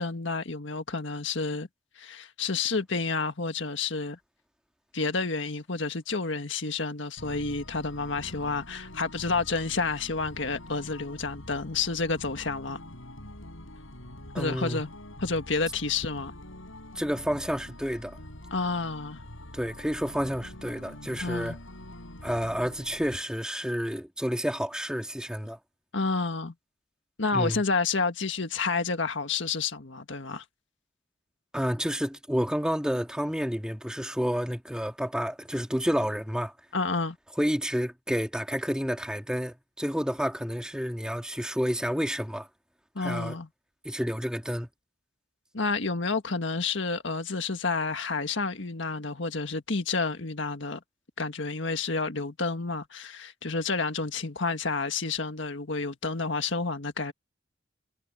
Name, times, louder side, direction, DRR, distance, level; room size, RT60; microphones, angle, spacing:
voice 1, 0.0-1.7 2.0-4.2 4.9-12.8 14.3-14.9 15.2-16.3 18.5-19.2 21.2-21.6 25.9-26.5 27.2-30.4 36.7-37.2 42.9-43.5 45.5-50.8 51.2-57.1, left 4 dB, 70° left, 1.7 m, -30 dB
sound 1, 7.2-23.2, left 1 dB, 90° left, 6.1 m, -45 dB
voice 2, 14.3-14.8 17.0-18.2 19.5-21.6 22.2-25.6 27.3-27.6 31.5-36.5 37.4-42.5 43.0-43.4 43.8-44.7, equal, 5° right, 2.2 m, -30 dB
head